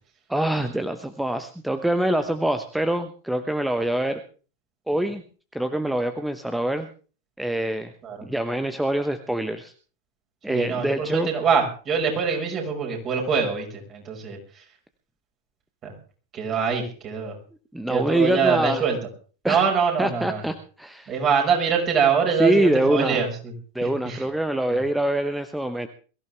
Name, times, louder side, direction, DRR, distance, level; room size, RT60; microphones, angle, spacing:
voice 1, 0.3-4.2 4.9-5.2 5.5-6.9 7.4-7.9 8.2-9.7 10.4-11.3 17.7-18.8 19.4-19.6 20.0-21.1 22.4-23.2 23.7-25.9, right 1 dB, 5° right, 9 dB, 1.0 m, -24 dB
voice 2, 10.5-14.6 15.8-15.9 16.3-17.4 17.9-19.0 19.5-20.4 21.1-23.5 23.8-24.2 24.7-24.8, right 6 dB, 30° right, 1 dB, 5.7 m, -24 dB
22.5 x 15.0 x 3.5 m, 0.38 s
figure-of-eight pair, 90°, 0 cm